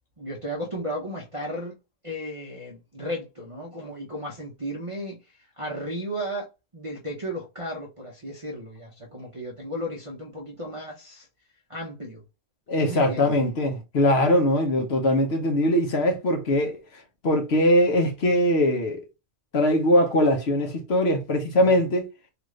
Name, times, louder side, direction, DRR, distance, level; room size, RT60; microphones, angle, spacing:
voice 1, 0.2-1.7 2.0-5.2 5.6-11.3 11.7-12.2 12.8-13.4 21.5-21.8, equal, 35° right, 0.6 m, -34 dB
voice 2, 12.7-19.0 19.5-22.0, left 1 dB, 55° left, 1.0 m, -21 dB
3.4 x 2.5 x 3.1 m
omnidirectional pair, 1.4 m